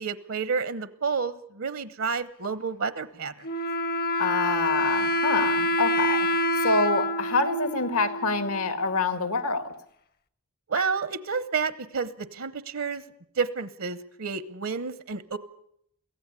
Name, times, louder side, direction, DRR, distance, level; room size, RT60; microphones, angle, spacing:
voice 1, 0.0-3.5 10.7-13.0 13.3-15.4, right 5 dB, 65° right, 15 dB, 0.9 m, -30 dB
Wind instrument woodwind instrument, 3.4-8.9, left 1 dB, 45° left, 0.8 m, -27 dB
voice 2, 4.2-6.3 6.6-9.7, left 3 dB, 80° left, 11 dB, 2.0 m, -26 dB
23.5 x 16.5 x 8.3 m, 0.70 s
head